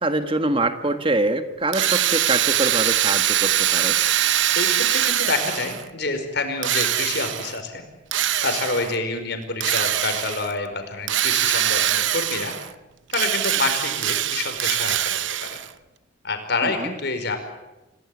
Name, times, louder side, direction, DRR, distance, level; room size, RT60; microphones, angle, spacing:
voice 1, 0.0-4.0 16.6-16.9, right 2 dB, 25° right, 9 dB, 1.7 m, -24 dB
Drill, 1.7-5.9 6.6-7.6 8.1-9.0 9.6-10.5 11.1-12.7 13.1-15.7, right 11 dB, 65° right, 0.9 m, -23 dB
voice 2, 4.5-7.8 8.4-12.5 13.1-15.0 15.4-15.5 16.2-17.4, left 3 dB, 55° left, 6 dB, 5.0 m, -27 dB
27.5 x 18.5 x 9.7 m, 1.0 s
head